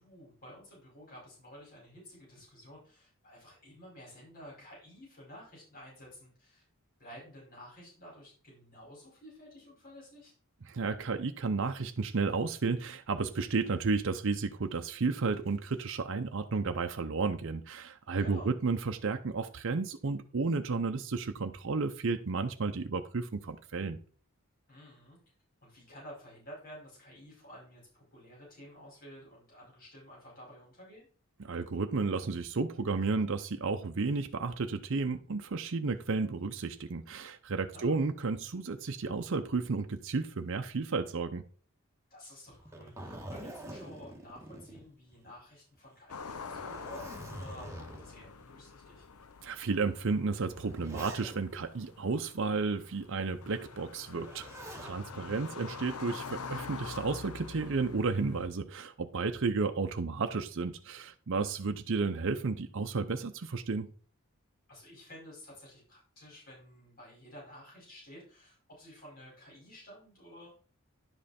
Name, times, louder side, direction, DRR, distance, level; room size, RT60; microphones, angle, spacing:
voice 1, 0.0-6.6 7.0-10.3 18.1-18.5 24.7-25.2 25.6-31.1 37.7-38.0 42.1-49.0 55.1-55.6 64.7-70.5, equal, 40° left, 5.0 m, -52 dB
voice 2, 10.7-24.0 31.4-41.4 49.4-54.5 54.8-63.9, right 4 dB, 60° right, 0.6 m, -32 dB
Zipper (clothing), 42.5-45.4 45.8-45.9 46.4-48.3 49.0-49.1 50.1-51.6 54.1-55.0 56.4-56.8, right 1 dB, 15° right, 1.5 m, -46 dB
sound 1, 46.1-58.5, left 5 dB, 85° left, 0.7 m, -46 dB
10.5 x 5.4 x 4.2 m
head